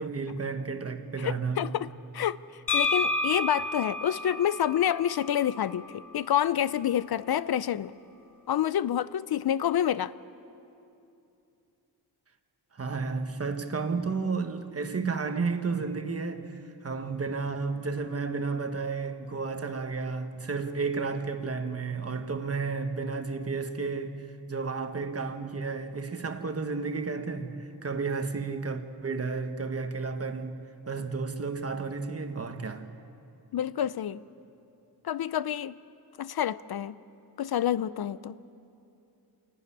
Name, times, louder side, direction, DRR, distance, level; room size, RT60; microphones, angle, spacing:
voice 1, 0.0-1.7 12.7-24.1 24.5-30.6 30.9-32.9, right 4 dB, 35° right, 1.1 m, -32 dB
voice 2, 1.2-2.4 2.7-7.9 8.5-10.1 33.5-34.2 35.0-35.7 36.2-36.9 37.4-38.4, left 10 dB, 65° left, 0.5 m, -28 dB
sound 1, 2.7-6.5, left 3 dB, 50° left, 2.0 m, -31 dB
27.5 x 11.5 x 9.8 m
wide cardioid pair, 140°, 41 cm